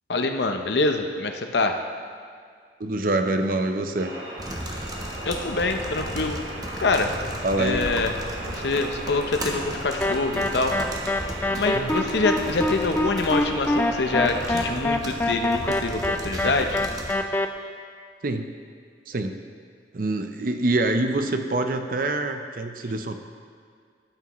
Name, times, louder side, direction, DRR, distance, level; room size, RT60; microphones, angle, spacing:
voice 1, 0.1-1.8 5.2-6.4 6.8-7.1 7.5-8.1 8.4-10.7 11.5-16.8, left 3 dB, 70° left, 5 dB, 0.7 m, -25 dB
voice 2, 2.8-4.1 7.4-7.8 11.7-12.0 18.2-18.5 19.1-19.4 19.9-23.2, right 2 dB, 50° right, 7 dB, 0.6 m, -25 dB
sound 1, 4.0-14.8, right 1 dB, 70° right, 2.2 m, -37 dB
sound 2, 4.4-17.2, right 1 dB, 20° right, 0.9 m, -35 dB
sound 3, 10.0-17.5, left 1 dB, 10° left, 0.4 m, -25 dB
13.0 x 8.4 x 3.1 m, 2.1 s
head